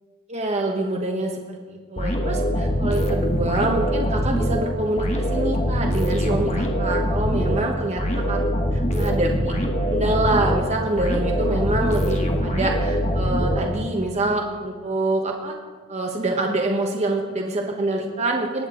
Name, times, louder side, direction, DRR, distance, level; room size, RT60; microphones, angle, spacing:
voice 1, 0.3-8.0 8.3-8.4 8.7-9.6 9.9-15.5 15.9-18.7, right 2 dB, 30° right, 1 dB, 1.1 m, -25 dB
sound 1, 2.0-14.1, equal, 30° left, 1.2 m, -23 dB
19.5 x 8.8 x 3.8 m, 1.5 s
head